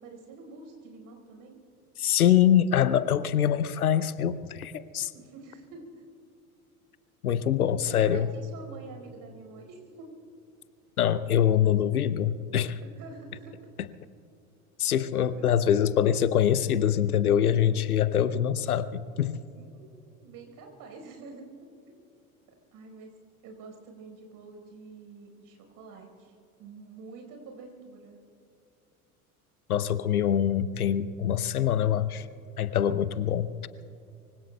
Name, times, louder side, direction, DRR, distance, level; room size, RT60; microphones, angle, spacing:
voice 1, 0.0-1.6 5.1-6.0 7.8-10.1 12.8-13.6 15.2-15.7 19.5-21.4 21.9-22.1 22.7-23.1 23.4-28.2, right 3 dB, 45° right, 2 dB, 4.7 m, -47 dB
voice 2, 2.0-5.1 7.2-8.3 11.0-12.8 14.8-19.4 29.7-32.3 32.6-33.5, left 9 dB, 80° left, 16 dB, 0.7 m, -24 dB
25.0 x 24.5 x 2.3 m, 2.7 s
figure-of-eight pair, 70°, 44 cm